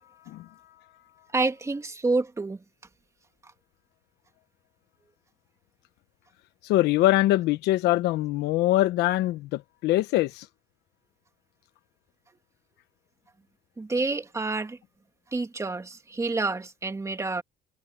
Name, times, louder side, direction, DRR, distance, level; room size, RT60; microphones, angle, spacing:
voice 1, 1.3-2.6 13.8-14.8 15.3-17.4, right 3 dB, 15° right, 2.6 m, -28 dB
voice 2, 6.6-10.5, left 16 dB, 85° left, 1.2 m, -23 dB
cardioid pair, 110°, 17 cm